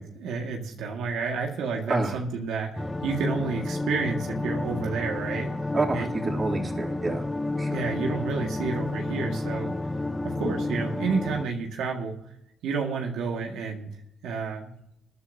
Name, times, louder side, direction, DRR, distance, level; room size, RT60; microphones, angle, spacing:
voice 1, 0.0-5.5 5.9-6.1 7.7-9.7 10.2-12.2 12.6-13.9 14.2-14.7, right 4 dB, 85° right, 0 dB, 1.9 m, -30 dB
sound 1, 2.8-11.5, left 2 dB, 15° left, 0.8 m, -31 dB
voice 2, 5.7-7.2 7.6-7.8, right 3 dB, 30° right, -2 dB, 3.1 m, -28 dB
22.0 x 10.0 x 2.8 m, 0.76 s
cardioid pair, 90°, 0 cm